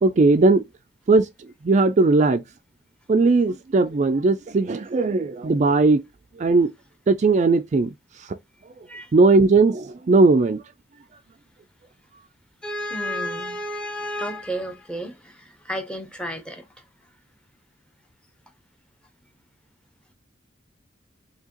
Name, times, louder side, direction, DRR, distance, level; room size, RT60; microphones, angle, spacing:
voice 1, 0.0-0.6 1.1-1.3 1.6-2.4 3.1-6.0 6.4-6.7 7.1-7.9 9.1-10.6, right 3 dB, 40° right, 0.4 m, -18 dB
voice 2, 12.6-16.7, equal, 5° left, 0.7 m, -31 dB
4.6 x 2.9 x 2.8 m
head